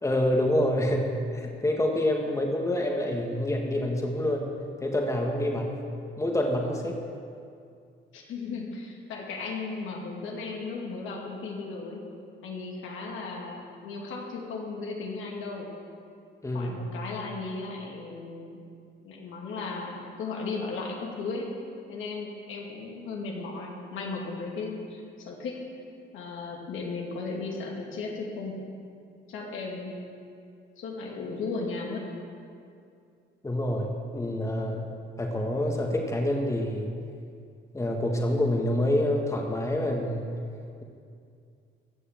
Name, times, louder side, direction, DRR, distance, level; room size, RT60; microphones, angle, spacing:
voice 1, 0.0-4.5 4.8-5.8 6.2-7.0 16.4-16.7 33.4-34.9 35.2-36.9 37.7-40.3, left 1 dB, 15° left, 1 dB, 1.7 m, -27 dB
voice 2, 8.1-12.0 12.4-15.7 16.5-18.6 19.0-21.5 21.9-25.5 26.1-28.6 29.3-29.9 30.8-32.1, left 4 dB, 85° left, -1 dB, 2.3 m, -36 dB
15.5 x 6.5 x 7.4 m, 2.4 s
cardioid pair, 90°, 20 cm